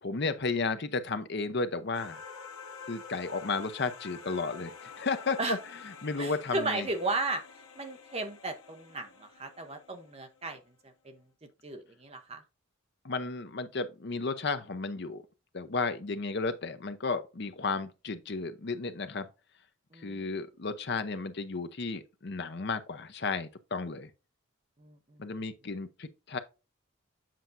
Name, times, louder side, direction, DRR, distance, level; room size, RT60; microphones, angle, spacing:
voice 1, 0.0-2.2 2.9-5.6 5.8-6.9 13.0-15.2 15.5-19.3 20.0-24.1 25.2-26.4, left 4 dB, 50° left, 0.7 m, -33 dB
sound 1, 1.9-10.5, left 5 dB, 85° left, 1.2 m, -48 dB
voice 2, 6.2-7.4 7.7-10.6 11.0-11.2 11.6-12.4 19.9-20.2 24.8-25.2, right 2 dB, 30° right, 0.8 m, -35 dB
7.6 x 5.8 x 2.6 m
head